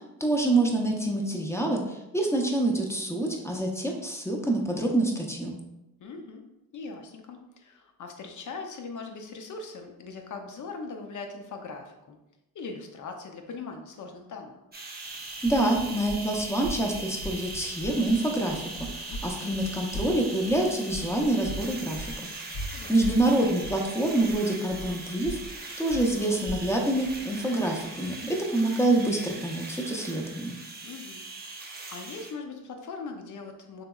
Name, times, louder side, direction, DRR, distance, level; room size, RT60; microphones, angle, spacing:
voice 1, 0.2-5.6 15.4-18.6 18.9-22.3 22.6-25.4 25.8-30.6, right 1 dB, 5° left, 0 dB, 0.6 m, -26 dB
voice 2, 6.0-6.4 6.7-12.2 12.5-14.5 19.1-19.2 22.7-23.2 30.8-33.8, left 4 dB, 55° left, 4 dB, 0.6 m, -40 dB
sound 1, 14.7-32.3, right 3 dB, 25° right, 0.7 m, -40 dB
sound 2, 15.1-28.4, equal, 75° left, 1.0 m, -41 dB
3.3 x 3.0 x 2.3 m, 0.92 s
cardioid pair, 65°, 36 cm